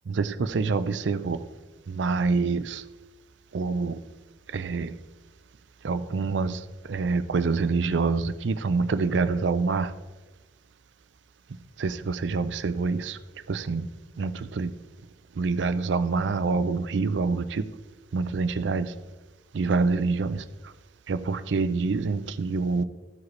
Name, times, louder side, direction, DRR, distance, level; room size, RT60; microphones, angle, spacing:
voice 1, 0.2-1.4 2.0-2.8 3.5-3.9 4.5-4.9 5.8-6.5 6.9-9.9 11.8-13.1 13.5-13.8 14.2-14.3 14.6-14.7 15.4-17.4 18.1-18.9 19.6-20.4 21.1-22.8, right 4 dB, 80° right, 0.5 m, -26 dB
13.5 x 4.8 x 3.2 m
head